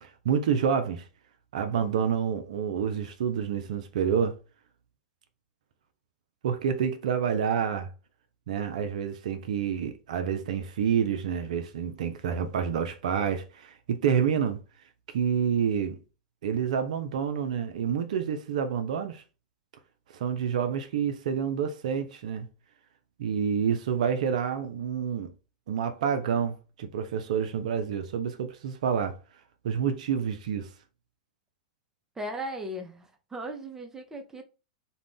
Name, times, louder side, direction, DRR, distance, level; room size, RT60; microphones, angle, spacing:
voice 1, 0.0-1.1 1.5-4.4 6.4-7.9 8.5-14.6 15.1-16.0 16.4-19.2 20.1-22.5 23.2-25.3 25.7-29.2 29.6-30.7, right 7 dB, 60° right, 0.4 m, -28 dB
voice 2, 32.2-34.4, right 1 dB, 10° right, 0.6 m, -37 dB
2.4 x 2.2 x 3.4 m
figure-of-eight pair, 100°, 4 cm